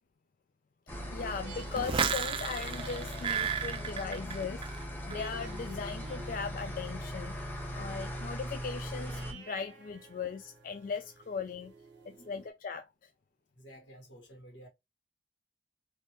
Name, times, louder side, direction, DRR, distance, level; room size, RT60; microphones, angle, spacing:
sound 1, 0.9-9.3, equal, 10° left, 0.9 m, -40 dB
voice 1, 1.1-4.6 5.1-7.3 7.7-11.7 12.1-13.1, left 5 dB, 50° left, 0.3 m, -38 dB
sound 2, 1.2-12.5, right 3 dB, 85° right, 0.8 m, -53 dB
sound 3, 1.7-4.8 5.1-5.5, right 7 dB, 30° right, 0.4 m, -33 dB
voice 2, 12.0-12.3 13.5-14.7, equal, 85° left, 1.7 m, -53 dB
3.6 x 2.7 x 2.8 m
head